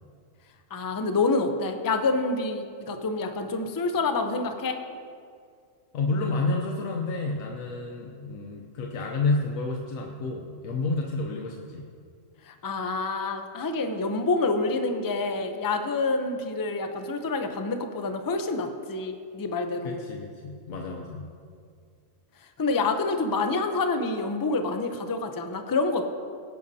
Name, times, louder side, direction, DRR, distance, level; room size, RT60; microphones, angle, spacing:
voice 1, 0.7-4.8 12.4-20.0 22.6-26.0, left 3 dB, 25° left, 6 dB, 0.4 m, -27 dB
voice 2, 5.9-11.8 19.8-21.3, left 3 dB, 85° left, 1 dB, 1.2 m, -30 dB
17.5 x 10.5 x 2.7 m, 2.2 s
omnidirectional pair, 1.4 m